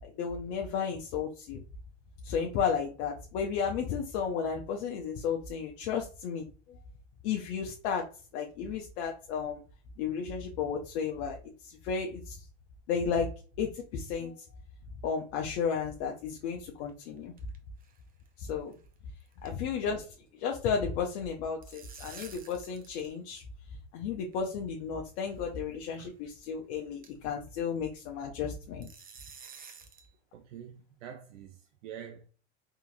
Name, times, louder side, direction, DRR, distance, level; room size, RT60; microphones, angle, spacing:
voice 1, 0.0-1.6 2.2-6.5 7.2-8.1 8.3-9.6 10.0-11.4 11.6-12.4 12.9-13.3 13.6-14.4 15.0-17.3 18.4-18.7 19.4-20.1 20.4-23.4 23.9-28.9, left 6 dB, 65° left, 0.8 m, -33 dB
sound 1, 16.8-17.6 17.8-18.0 18.3-18.4 18.7-18.9 19.2-20.0 20.3-20.5 21.3-23.1 23.4-23.5 24.3-24.4 25.3-25.5 25.9-26.0 26.4-26.5 27.0-27.3 28.8-30.1, right 6 dB, 25° right, 0.6 m, -51 dB
voice 2, 30.3-32.3, right 9 dB, 80° right, 0.6 m, -46 dB
3.7 x 2.9 x 2.5 m
supercardioid pair, 105°, 36 cm